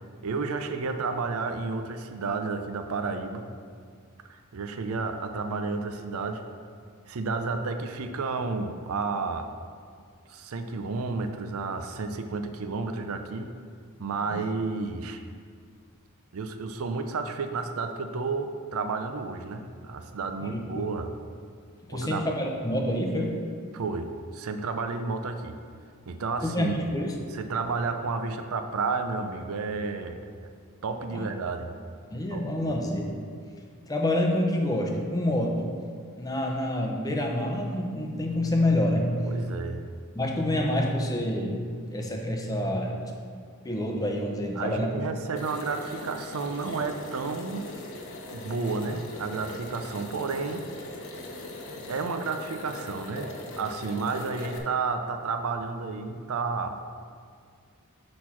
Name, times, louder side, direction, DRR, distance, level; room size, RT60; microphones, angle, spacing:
voice 1, 0.2-3.5 4.3-6.4 7.1-9.5 10.3-13.5 14.0-15.2 16.3-21.1 21.9-22.2 23.7-25.6 26.1-26.9 27.3-30.2 30.8-31.7 32.3-32.7 39.2-39.9 44.6-47.7 48.3-50.6 51.9-53.3 53.6-56.8, right 4 dB, 70° right, 7 dB, 0.5 m, -31 dB
voice 2, 20.4-20.9 21.9-23.4 26.4-27.1 31.1-31.3 32.1-33.3 33.9-35.7 36.2-39.4 40.1-41.6 41.9-43.1 43.6-45.0, left 1 dB, 15° left, 1 dB, 0.6 m, -27 dB
sound 1, 45.4-54.6, left 1 dB, 60° left, 0.9 m, -40 dB
6.5 x 4.2 x 5.8 m, 2.1 s
head